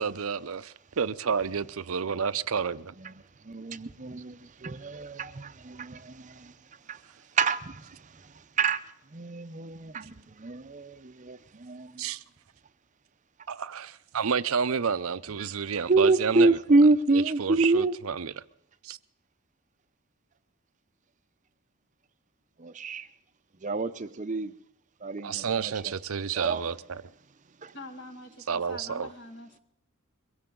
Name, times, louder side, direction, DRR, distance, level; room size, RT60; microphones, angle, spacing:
voice 1, 0.0-2.9 12.0-12.2 13.5-16.6 17.1-18.3 18.8-19.0 25.2-27.0 28.5-29.1, right 6 dB, 80° right, 0.6 m, -30 dB
voice 2, 3.4-6.5 6.9-7.0 7.3-8.8 9.1-12.0 15.8-17.9 22.6-23.1 23.6-24.5 25.0-25.9 26.3-26.6 27.6-27.7, right 3 dB, 35° right, 0.6 m, -27 dB
voice 3, 27.7-29.6, left 1 dB, 55° left, 2.0 m, -44 dB
23.0 x 16.5 x 3.8 m
head